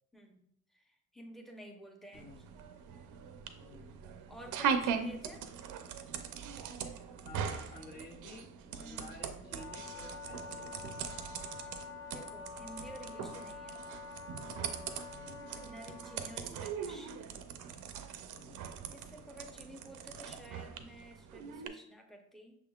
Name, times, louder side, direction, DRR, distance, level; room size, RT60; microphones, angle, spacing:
voice 1, 0.1-0.4 0.7-2.3 4.3-5.4 8.8-9.1 12.1-13.8 15.5-17.2 18.9-22.6, right 1 dB, ahead, 2 dB, 0.8 m, -51 dB
sound 1, 2.1-21.7, right 7 dB, 85° right, 0.5 m, -41 dB
voice 2, 3.6-4.0 7.2-10.7 15.1-15.5 18.3-18.7, left 3 dB, 35° left, 1 dB, 0.6 m, -52 dB
Wind instrument woodwind instrument, 9.4-16.5, left 5 dB, 60° left, 1.7 m, -47 dB
6.1 x 3.6 x 2.3 m, 0.73 s
cardioid pair, 90°, 30 cm